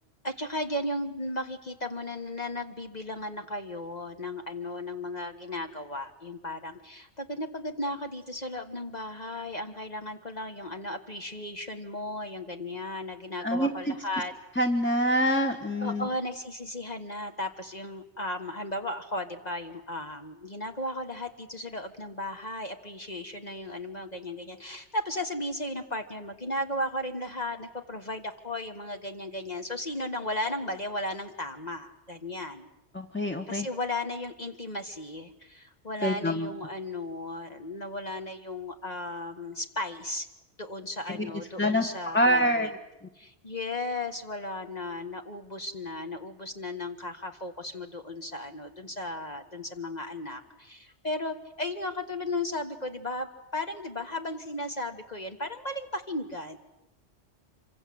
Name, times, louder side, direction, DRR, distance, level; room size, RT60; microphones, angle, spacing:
voice 1, 0.2-14.3 15.8-32.7 33.5-40.3 40.6-42.7 43.1-56.6, left 1 dB, 40° left, 6 dB, 1.6 m, -35 dB
voice 2, 13.4-13.9 14.6-16.1 32.9-33.7 36.0-36.5 41.6-41.8 42.1-42.7, equal, 10° left, 4 dB, 1.4 m, -25 dB
26.0 x 24.5 x 7.8 m, 0.92 s
omnidirectional pair, 1.2 m